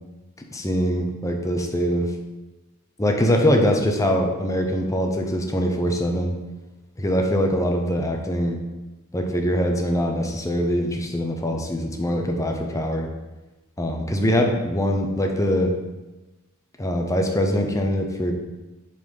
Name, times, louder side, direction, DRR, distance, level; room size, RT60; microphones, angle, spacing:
voice 1, 0.5-2.1 3.0-6.4 7.0-8.6 9.1-13.1 13.8-15.8 16.8-18.3, equal, 15° left, 2 dB, 0.9 m, -23 dB
8.0 x 4.3 x 5.4 m, 1.1 s
head